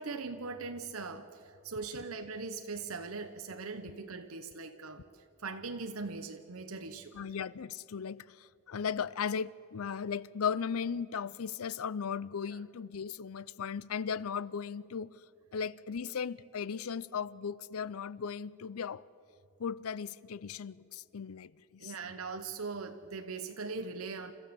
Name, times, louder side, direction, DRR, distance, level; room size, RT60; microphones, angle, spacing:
voice 1, 0.0-7.1 12.4-12.6 21.8-24.3, right 4 dB, 85° right, 1.0 m, -40 dB
voice 2, 7.1-15.1 15.5-19.0 19.6-21.9, left 6 dB, 85° left, 0.5 m, -37 dB
29.5 x 14.0 x 7.0 m
head